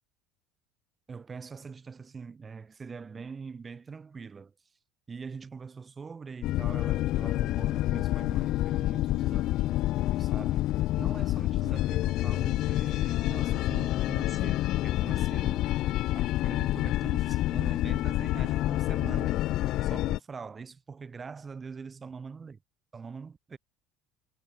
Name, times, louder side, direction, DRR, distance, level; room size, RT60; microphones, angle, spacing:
voice 1, 1.1-4.5 5.1-9.7 10.1-15.7 16.1-19.4 19.8-22.6 22.9-23.6, right 5 dB, 25° right, 5.6 m, -43 dB
sound 1, 6.4-20.2, left 15 dB, 60° left, 0.9 m, -28 dB
supercardioid pair, 110°, 0 cm